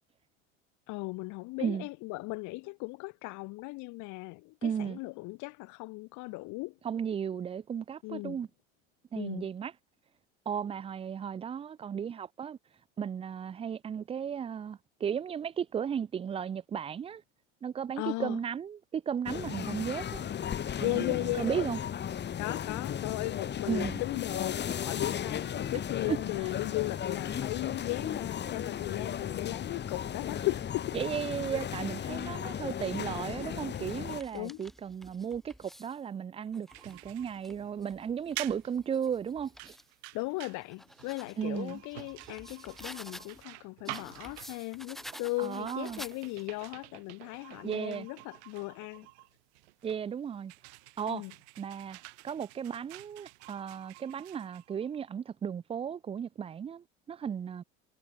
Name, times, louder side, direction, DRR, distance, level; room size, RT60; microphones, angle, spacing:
voice 1, 0.9-6.7 8.0-8.4 9.2-9.5 18.0-18.4 20.8-21.5 22.4-31.0 34.3-34.6 40.1-49.1 51.1-51.3, left 24 dB, 55° left, 0.9 m, -37 dB
voice 2, 4.6-5.0 6.8-8.5 9.1-9.7 10.5-12.6 13.0-17.2 17.6-20.3 20.8-21.8 23.7-24.0 26.1-26.2 30.9-39.8 41.4-41.8 45.4-46.0 47.6-48.1 49.8-50.5 51.0-51.3 51.6-57.6, right 8 dB, 20° right, 0.4 m, -35 dB
sound 1, 19.3-34.2, left 9 dB, 30° left, 1.3 m, -35 dB
sound 2, 34.2-36.0 36.5-39.9 40.4-43.4 43.8-46.6, equal, ahead, 2.3 m, -51 dB
sound 3, 36.7-55.1, right 24 dB, 75° right, 3.1 m, -48 dB
hypercardioid pair, 80°, 34 cm